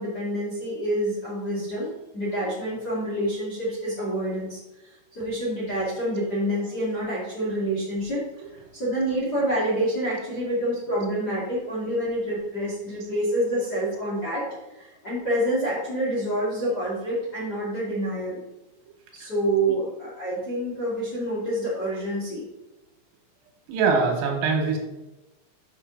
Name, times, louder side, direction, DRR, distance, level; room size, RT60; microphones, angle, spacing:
voice 1, 0.0-18.4 19.1-22.4, right 1 dB, 30° left, -7 dB, 1.9 m, -27 dB
voice 2, 23.7-24.8, right 4 dB, 85° right, 2 dB, 3.9 m, -22 dB
8.3 x 6.6 x 4.0 m, 1.0 s
omnidirectional pair, 5.3 m